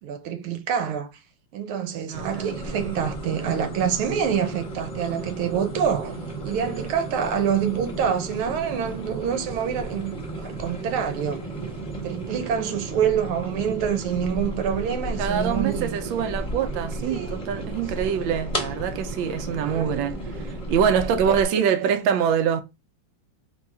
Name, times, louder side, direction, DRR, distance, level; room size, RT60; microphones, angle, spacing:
voice 1, 0.0-1.1 1.5-6.2 6.4-11.4 12.0-16.1 17.1-17.4 18.0-18.2 19.6-20.0 21.3-22.0, right 8 dB, 90° right, 1.7 m, -27 dB
sound 1, 2.1-21.4, right 2 dB, 25° left, 0.8 m, -33 dB
voice 2, 2.1-2.7 15.2-22.6, right 8 dB, 75° right, 1.3 m, -25 dB
4.3 x 2.3 x 4.7 m
omnidirectional pair, 2.3 m